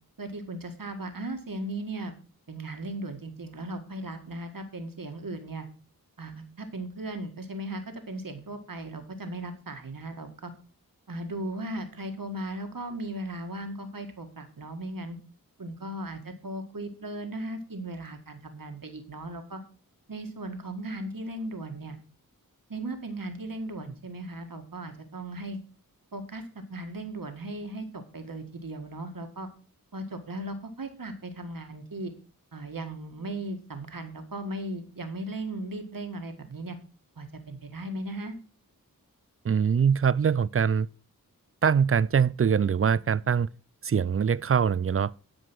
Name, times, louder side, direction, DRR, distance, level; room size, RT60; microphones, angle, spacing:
voice 1, 0.2-2.1 2.5-5.7 6.2-10.5 11.1-15.2 15.6-19.6 20.1-22.0 22.7-25.6 26.1-26.4 26.7-29.5 29.9-32.1 32.5-36.8 37.2-38.3, right 1 dB, 65° right, 1.7 m, -37 dB
voice 2, 39.4-40.9 41.6-43.5 43.8-45.1, right 7 dB, 40° right, 0.4 m, -23 dB
11.0 x 5.2 x 6.1 m
wide cardioid pair, 50°, 36 cm